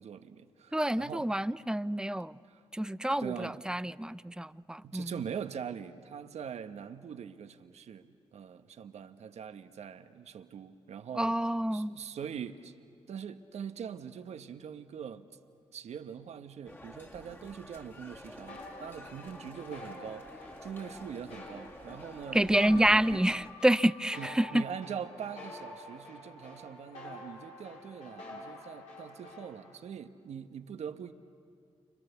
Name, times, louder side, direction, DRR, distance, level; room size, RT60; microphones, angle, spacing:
voice 1, 0.0-1.3 2.5-2.6 3.2-3.6 4.8-11.4 11.7-12.7 13.1-15.3 15.7-23.3 24.2-31.1, right 7 dB, 70° right, 1.1 m, -42 dB
voice 2, 0.7-2.4 2.7-5.1 11.2-11.9 22.3-24.6, right 1 dB, 5° right, 0.7 m, -28 dB
sound 1, 16.6-23.5, left 1 dB, 15° left, 2.6 m, -50 dB
sound 2, 18.5-29.8, left 2 dB, 80° left, 5.8 m, -48 dB
30.0 x 25.0 x 7.0 m
supercardioid pair, 45°, 12 cm